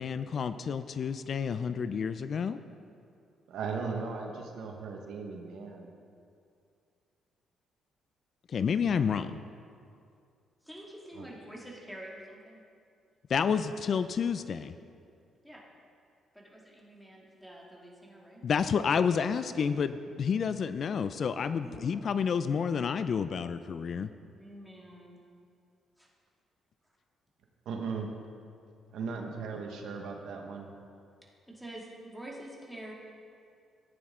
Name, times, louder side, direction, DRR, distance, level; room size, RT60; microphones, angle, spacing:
voice 1, 0.0-2.6 8.5-9.4 13.3-14.7 18.4-24.1, left 6 dB, 55° left, 12 dB, 0.4 m, -30 dB
voice 2, 3.5-5.9 11.1-11.3 27.6-28.1 28.9-30.7, right 5 dB, 80° right, 2 dB, 1.3 m, -37 dB
voice 3, 10.6-12.6 15.4-15.6 16.3-18.4 21.6-22.0 24.4-25.2 26.0-26.1 31.5-32.9, right 1 dB, ahead, -3 dB, 2.3 m, -47 dB
14.5 x 9.2 x 3.7 m, 2.4 s
cardioid pair, 90°, 0 cm